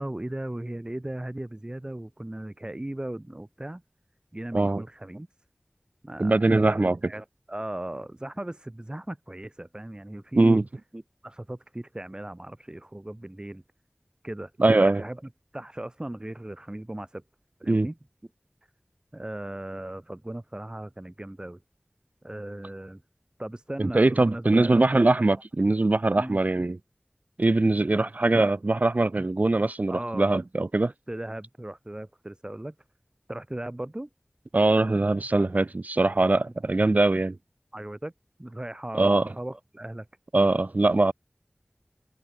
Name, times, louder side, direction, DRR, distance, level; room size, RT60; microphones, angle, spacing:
voice 1, 0.0-3.8 4.3-5.3 6.0-10.6 10.9-13.6 14.2-14.5 14.8-15.2 15.5-17.2 17.6-18.0 19.1-21.6 22.2-23.0 23.4-25.1 26.1-26.4 27.9-28.1 29.9-30.3 30.8-32.7 33.3-34.1 37.7-38.1 38.4-40.1, right 1 dB, 30° right, 2.1 m, -37 dB
voice 2, 6.2-7.1 10.3-10.6 14.6-15.0 17.7-17.9 23.8-26.8 27.4-30.9 34.5-37.4 38.9-39.3 40.3-41.1, right 2 dB, 55° right, 0.9 m, -22 dB
wide cardioid pair, 50°, 3 cm